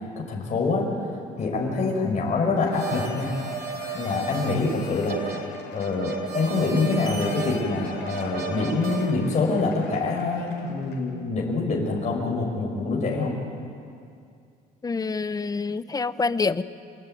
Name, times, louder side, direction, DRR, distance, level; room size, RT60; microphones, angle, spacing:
voice 1, 0.2-0.9 1.4-3.3 3.9-5.4 5.7-13.3, left 3 dB, 45° left, -1 dB, 5.6 m, -25 dB
Cheering / Applause / Crowd, 2.2-11.2, left 5 dB, 90° left, 4.7 m, -42 dB
sound 1, 2.7-9.1, right 7 dB, 70° right, 4.2 m, -35 dB
voice 2, 14.8-16.6, left 4 dB, 20° left, 14 dB, 0.8 m, -26 dB
27.5 x 20.0 x 9.3 m, 2.4 s
cardioid pair, 110°, 17 cm